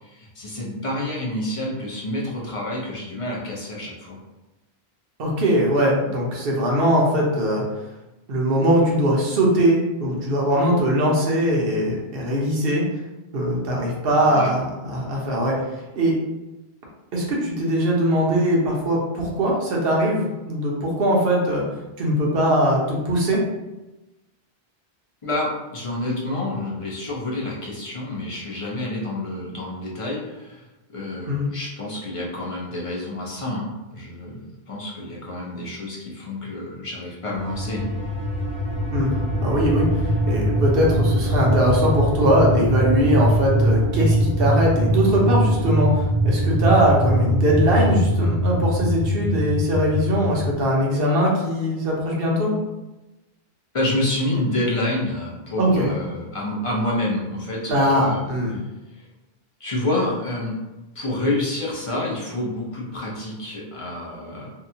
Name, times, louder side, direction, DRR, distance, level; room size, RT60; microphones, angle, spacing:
voice 1, 0.0-4.2 14.2-14.5 25.2-37.9 53.7-58.2 59.0-59.1 59.6-60.6 60.9-64.5, left 1 dB, 40° left, -4 dB, 0.6 m, -28 dB
voice 2, 5.2-7.6 8.3-12.9 13.3-15.5 16.0-16.1 17.1-21.6 22.0-23.4 31.2-31.5 38.9-39.1 39.4-52.5 55.6-55.9 57.7-58.6, equal, 65° right, -2 dB, 0.9 m, -21 dB
sound 1, 37.3-50.5, equal, 80° left, 1.1 m, -22 dB
2.7 x 2.2 x 2.7 m, 1.0 s
omnidirectional pair, 1.1 m